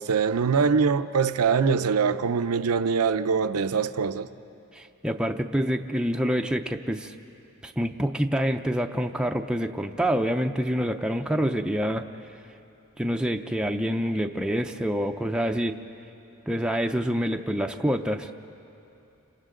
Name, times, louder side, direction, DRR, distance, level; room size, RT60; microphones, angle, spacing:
voice 1, 0.0-4.3, right 5 dB, 80° right, 0.6 m, -23 dB
voice 2, 4.7-7.1 7.6-12.1 13.0-15.8 16.5-18.3, equal, 5° right, 0.5 m, -26 dB
29.5 x 27.0 x 3.8 m
head